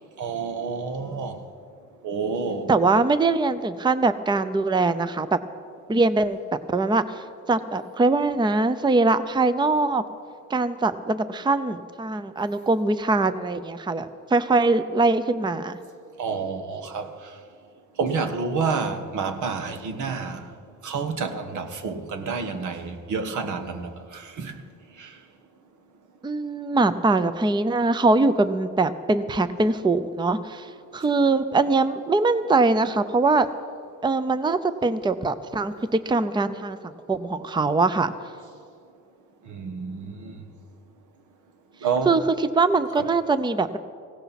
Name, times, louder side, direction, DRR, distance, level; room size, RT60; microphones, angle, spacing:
voice 1, 0.2-1.4 2.0-2.7 16.2-17.1 18.0-20.5 20.8-24.6 25.0-25.1 39.5-40.4 41.8-42.2 43.0-43.1, right 5 dB, 75° right, 1.4 m, -29 dB
voice 2, 2.7-5.4 5.9-6.4 6.7-7.2 7.5-10.0 10.5-15.8 26.2-33.5 34.0-36.8 37.1-38.1 42.1-42.2 42.5-43.8, right 3 dB, 15° right, 0.6 m, -22 dB
18.0 x 16.5 x 4.2 m
cardioid pair, 90°, 30 cm